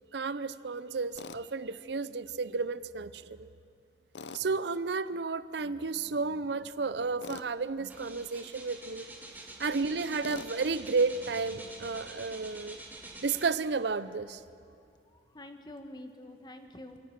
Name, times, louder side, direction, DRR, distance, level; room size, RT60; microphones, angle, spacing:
voice 1, 0.1-3.5 4.3-9.0 9.6-12.8 13.2-14.4, right 4 dB, 70° right, 15 dB, 0.7 m, -32 dB
Tools, 1.2-1.4 4.1-4.5 7.2-7.5 10.2-10.5, left 4 dB, 85° left, 0.7 m, -43 dB
sound 1, 7.1-7.3 7.6-13.8 14.4-14.5, right 2 dB, 10° right, 2.4 m, -47 dB
voice 2, 15.1-17.0, left 1 dB, 25° left, 6 dB, 1.4 m, -47 dB
27.5 x 17.5 x 6.0 m, 2.5 s
head